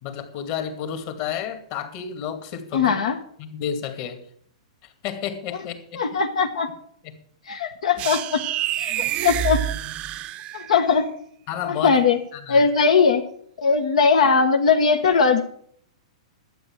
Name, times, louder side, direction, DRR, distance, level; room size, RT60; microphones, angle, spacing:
voice 1, 0.0-3.0 3.4-4.2 4.8-6.0 7.0-7.2 9.0-9.1 11.5-12.0 12.3-12.6, left 8 dB, 45° left, 7 dB, 2.3 m, -31 dB
voice 2, 2.7-3.2 6.0-6.7 7.5-8.4 8.7-9.6 10.5-11.1 11.8-12.2 12.5-13.2 13.6-15.4, left 5 dB, 80° left, 5 dB, 1.3 m, -19 dB
sound 1, 8.0-10.9, right 13 dB, 30° right, 0.6 m, -27 dB
12.0 x 8.8 x 7.4 m, 0.64 s
hypercardioid pair, 135°, 4 cm